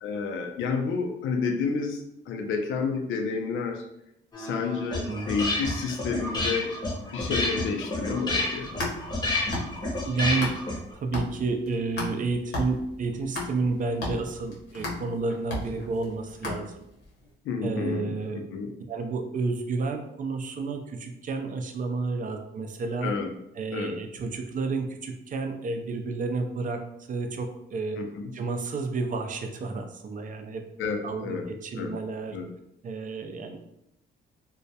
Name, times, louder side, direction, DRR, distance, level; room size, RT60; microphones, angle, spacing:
voice 1, 0.0-3.9 4.4-6.7 7.0-8.7 17.4-18.7 23.0-23.3 23.7-24.0 28.0-28.3 30.8-31.4 31.8-31.9 32.3-32.5, left 5 dB, 75° left, 4 dB, 0.5 m, -30 dB
sound 1, 4.3-10.9, left 2 dB, 20° left, 0.7 m, -30 dB
sound 2, 8.5-10.8 11.1-17.1, left 2 dB, 60° left, 0.8 m, -35 dB
voice 2, 10.0-10.6 10.9-16.8 17.6-18.4 18.9-23.1 23.6-28.0 28.3-30.7 31.0-32.4 32.8-33.7, right 3 dB, 40° right, 5 dB, 0.4 m, -31 dB
2.2 x 2.1 x 2.7 m, 0.82 s
cardioid pair, 90°, 20 cm